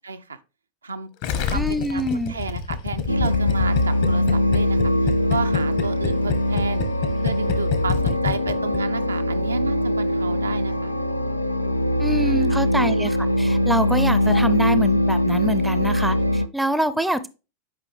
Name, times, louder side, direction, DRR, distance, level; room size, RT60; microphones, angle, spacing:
voice 1, 0.1-0.4 0.8-1.1 1.4-6.9 7.2-10.9 12.0-12.5, right 4 dB, 75° right, 0.6 m, -32 dB
Gurgling, 1.2-9.1, left 8 dB, 50° left, 1.2 m, -26 dB
voice 2, 1.5-2.3 12.0-17.3, right 1 dB, 5° right, 0.6 m, -25 dB
sound 1, 3.1-16.5, left 1 dB, 85° left, 0.4 m, -22 dB
sound 2, 9.2-15.7, left 7 dB, 70° left, 2.6 m, -42 dB
9.6 x 5.1 x 3.3 m
figure-of-eight pair, 90°, 0 cm